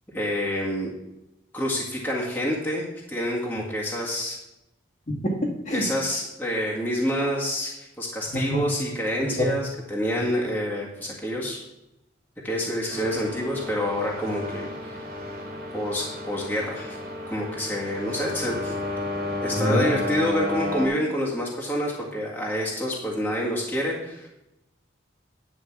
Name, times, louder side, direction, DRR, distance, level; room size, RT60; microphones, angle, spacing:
voice 1, 0.1-0.9 1.5-4.4 5.7-11.6 12.4-15.0 15.7-17.0 17.3-18.7 19.4-24.3, equal, 10° left, -4 dB, 1.9 m, -28 dB
voice 2, 5.1-5.9 8.3-8.6 9.2-9.5 19.6-19.9, equal, 40° left, -3 dB, 1.9 m, -25 dB
sound 1, 12.9-20.9, left 1 dB, 50° right, 1.9 m, -32 dB
10.0 x 5.1 x 7.3 m, 0.91 s
head